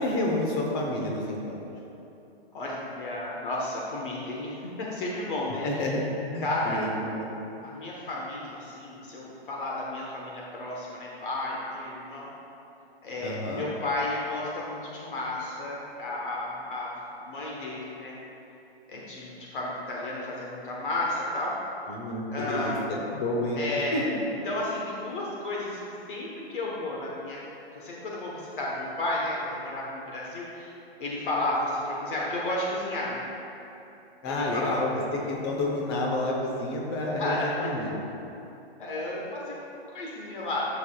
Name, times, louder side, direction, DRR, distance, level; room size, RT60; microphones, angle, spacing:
voice 1, 0.0-1.6 5.6-6.0 6.3-7.3 13.2-13.7 21.9-23.6 23.9-24.2 34.2-34.9 35.3-38.0, left 1 dB, 25° left, -1 dB, 0.8 m, -29 dB
voice 2, 2.5-5.9 6.4-6.8 7.6-12.3 13.0-16.9 17.2-18.1 18.9-21.5 22.3-22.8 23.5-24.1 24.4-25.8 26.1-27.5 27.7-30.7 31.0-33.2 34.3-34.9 37.2-37.5 38.8-39.5 39.9-40.7, left 2 dB, 55° left, -4 dB, 1.2 m, -32 dB
10.5 x 6.5 x 2.3 m, 2.9 s
hypercardioid pair, 160°, 32 cm